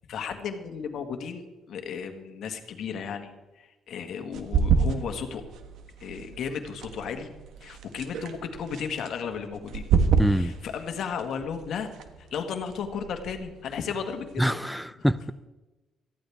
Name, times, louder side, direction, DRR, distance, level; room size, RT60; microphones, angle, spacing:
voice 1, 0.1-3.3 3.6-5.4 6.0-7.3 7.6-9.8 10.2-11.9 12.2-14.6 15.0-15.1, left 6 dB, 70° left, 6 dB, 1.7 m, -34 dB
sound 1, 4.3-14.6, right 6 dB, 80° right, 1.3 m, -30 dB
voice 2, 10.2-10.5 14.4-15.3, equal, ahead, 16 dB, 0.5 m, -25 dB
18.5 x 14.0 x 3.5 m, 1.1 s
cardioid pair, 90°, 0 cm